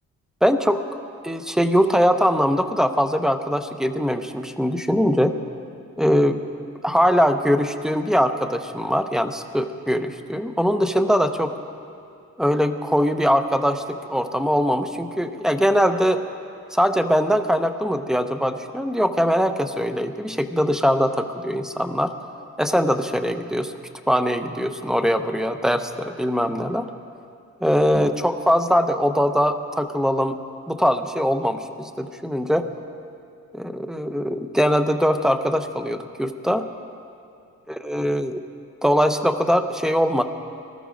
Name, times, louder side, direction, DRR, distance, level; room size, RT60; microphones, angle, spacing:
voice 1, 0.4-0.9 1.2-5.4 6.0-6.4 6.8-11.5 12.4-16.2 16.7-22.1 22.6-23.7 24.1-26.9 27.6-30.4 30.7-32.7 33.5-36.7 37.8-38.4 38.8-40.2, equal, ahead, 8 dB, 0.7 m, -21 dB
19.0 x 13.0 x 5.1 m, 2.5 s
cardioid pair, 115°, 29 cm